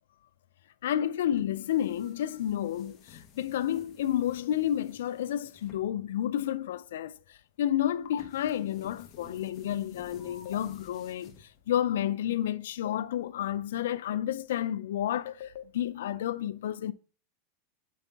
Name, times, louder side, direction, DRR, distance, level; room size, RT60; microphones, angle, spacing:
voice 1, 0.8-16.9, left 11 dB, 90° left, 0.4 m, -31 dB
sound 1, 1.3-11.9, left 7 dB, 30° left, 1.2 m, -54 dB
sound 2, 8.0-8.2 10.4-10.6 12.8-13.1 15.2-15.6, left 10 dB, 70° left, 0.9 m, -39 dB
8.2 x 5.4 x 3.5 m
supercardioid pair, 160°, 0 cm